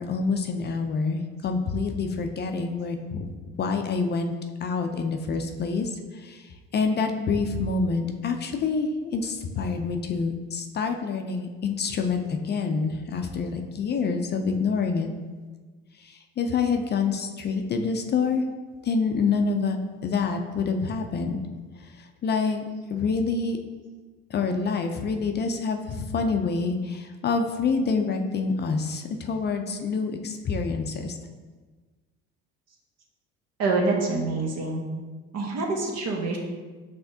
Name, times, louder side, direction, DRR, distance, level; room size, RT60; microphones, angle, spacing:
voice 1, 0.0-3.2 3.6-4.3 4.6-6.4 6.7-15.1 16.0-18.4 18.8-19.8 20.0-21.4 22.2-22.6 22.9-23.6 24.3-31.1, left 4 dB, 35° left, 5 dB, 0.4 m, -27 dB
voice 2, 33.6-34.8 35.3-36.4, right 3 dB, 60° right, 0 dB, 1.0 m, -26 dB
5.7 x 3.4 x 2.7 m, 1.4 s
supercardioid pair, 90°, 29 cm